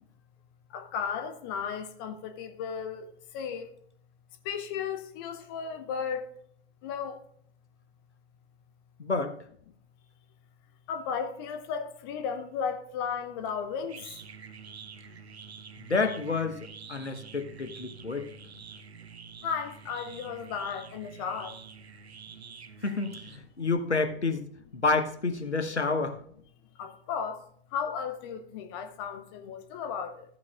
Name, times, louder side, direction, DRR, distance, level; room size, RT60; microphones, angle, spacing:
voice 1, 0.7-3.1 3.3-3.6 4.5-6.2 6.8-7.1 10.9-14.0 19.4-21.5 26.8-27.4 27.7-30.2, left 7 dB, 20° left, 0.6 m, -34 dB
voice 2, 9.0-9.4 15.8-18.3 22.8-24.4 24.7-26.2, left 3 dB, 85° left, 1.2 m, -29 dB
sound 1, 13.4-23.8, right 6 dB, 70° right, 0.9 m, -48 dB
14.0 x 8.4 x 2.4 m
figure-of-eight pair, 120°, 33 cm